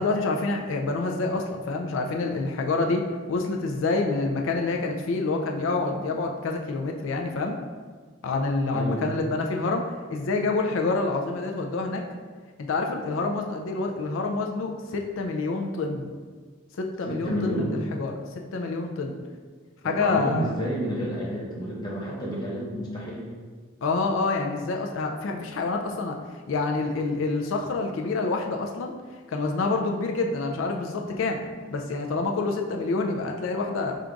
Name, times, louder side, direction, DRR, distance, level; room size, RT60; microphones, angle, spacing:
voice 1, 0.0-7.6 8.2-12.0 12.6-16.1 16.8-19.2 19.8-20.6 23.8-26.2 26.5-28.9 29.3-31.4 31.7-33.9, left 3 dB, 75° left, 2 dB, 0.4 m, -27 dB
voice 2, 8.7-9.1 17.1-17.7 19.8-23.3, equal, 20° left, -5 dB, 0.8 m, -30 dB
3.7 x 2.5 x 4.5 m, 1.5 s
head